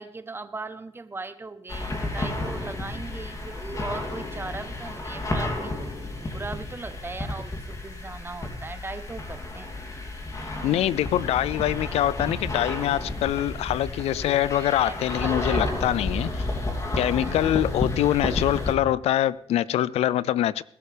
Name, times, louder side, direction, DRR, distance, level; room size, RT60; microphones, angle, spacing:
voice 1, 0.0-9.7 14.8-15.3 17.1-17.6, right 3 dB, 20° right, 0.9 m, -38 dB
sound 1, 1.7-18.7, left 2 dB, 30° left, 2.7 m, -32 dB
voice 2, 10.6-16.4 17.0-20.6, left 12 dB, 90° left, 0.4 m, -24 dB
20.0 x 11.5 x 3.4 m
cardioid pair, 95°, 10 cm